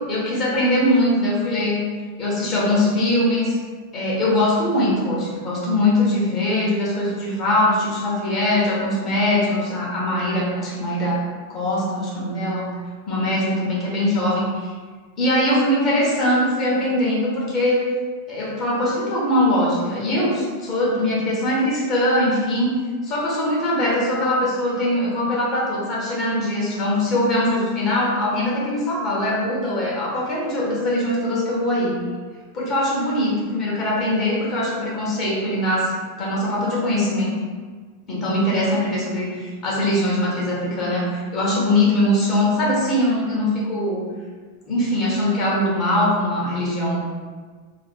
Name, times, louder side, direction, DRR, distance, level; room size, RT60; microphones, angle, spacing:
voice 1, 0.1-1.8 2.2-3.6 3.9-11.2 11.5-12.7 13.1-14.7 15.2-17.8 18.3-22.8 23.0-32.0 32.5-37.3 38.1-44.1 44.7-47.1, left 1 dB, 35° left, -5 dB, 1.2 m, -21 dB
3.2 x 2.2 x 4.1 m, 1.5 s
figure-of-eight pair, 90°, 0 cm